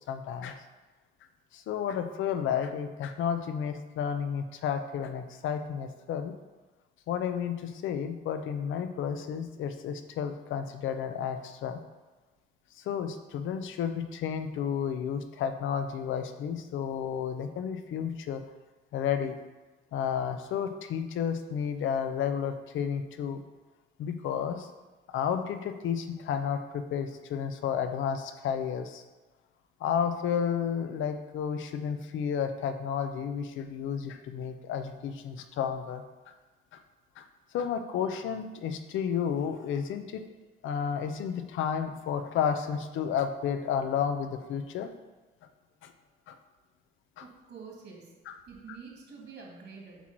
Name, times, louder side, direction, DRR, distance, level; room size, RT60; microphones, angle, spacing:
voice 1, 0.1-0.6 1.5-6.3 7.1-11.8 12.8-18.4 18.9-19.4 19.9-23.4 24.0-24.7 25.1-29.0 29.8-36.3 37.2-37.3 37.5-40.2 40.6-44.9 45.8-45.9 46.3-46.4 47.2-47.3 48.3-48.4, left 8 dB, 80° left, 8 dB, 0.6 m, -32 dB
voice 2, 47.2-48.1 48.5-50.0, right 5 dB, 65° right, -2 dB, 2.3 m, -47 dB
8.1 x 3.1 x 5.9 m, 1.2 s
cardioid pair, 90°, 20 cm